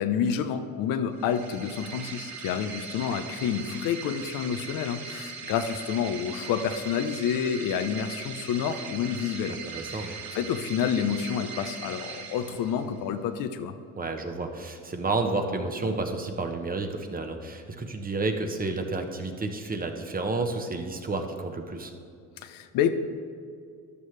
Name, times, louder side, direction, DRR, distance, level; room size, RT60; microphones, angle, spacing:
voice 1, 0.0-9.6 9.9-10.1 10.3-13.7 22.4-22.9, left 8 dB, 70° left, 9 dB, 0.9 m, -29 dB
sound 1, 1.1-13.1, right 5 dB, 55° right, 1.8 m, -40 dB
voice 2, 9.5-10.2 14.0-21.9, right 3 dB, 25° right, 5 dB, 1.2 m, -31 dB
14.0 x 11.0 x 3.4 m, 2.3 s
supercardioid pair, 95°, 34 cm